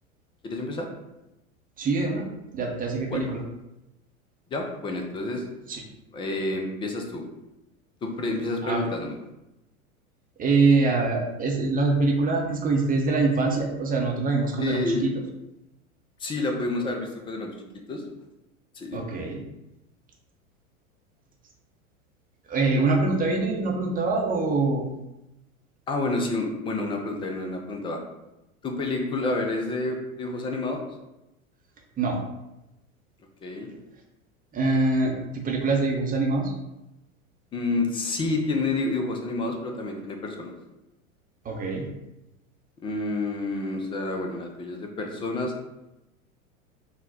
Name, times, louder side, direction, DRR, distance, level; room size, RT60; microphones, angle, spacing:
voice 1, 0.4-0.9 3.1-3.3 4.5-5.4 6.1-7.2 8.0-9.1 14.6-15.1 16.2-17.6 17.9-18.0 18.8-19.0 25.9-28.0 28.6-30.8 33.4-33.7 37.5-40.5 42.8-45.5, left 2 dB, 15° left, 3 dB, 0.3 m, -29 dB
voice 2, 1.8-2.3 2.5-3.4 5.7-5.8 8.6-8.8 10.4-15.1 18.9-19.4 22.5-24.9 32.0-32.2 34.5-36.5 41.4-41.9, right 3 dB, 20° right, 0 dB, 0.7 m, -24 dB
3.9 x 2.1 x 4.0 m, 0.93 s
hypercardioid pair, 90°, 42 cm